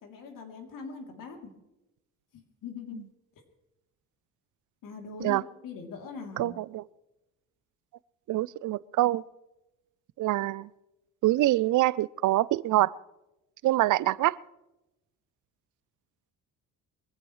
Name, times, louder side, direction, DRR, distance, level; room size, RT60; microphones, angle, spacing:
voice 1, 0.0-1.5 2.3-3.0 4.8-6.5, left 5 dB, 70° left, 3 dB, 3.2 m, -42 dB
voice 2, 6.4-6.8 8.3-9.2 10.2-10.7 11.2-12.9 13.6-14.4, right 16 dB, 60° right, 21 dB, 0.5 m, -25 dB
23.5 x 15.5 x 3.2 m, 0.96 s
cardioid pair, 145°, 34 cm